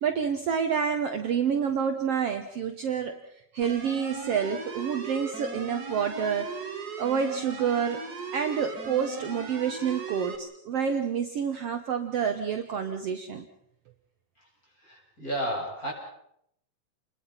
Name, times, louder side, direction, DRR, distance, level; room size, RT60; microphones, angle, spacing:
voice 1, 0.0-3.2 3.5-6.5 7.0-8.0 8.3-13.5, right 7 dB, 60° right, 6 dB, 2.0 m, -28 dB
sound 1, 3.6-10.4, right 4 dB, 35° right, 2.3 m, -38 dB
voice 2, 14.7-15.9, right 1 dB, 25° left, -1 dB, 8.0 m, -33 dB
29.5 x 22.0 x 5.8 m, 0.72 s
omnidirectional pair, 3.5 m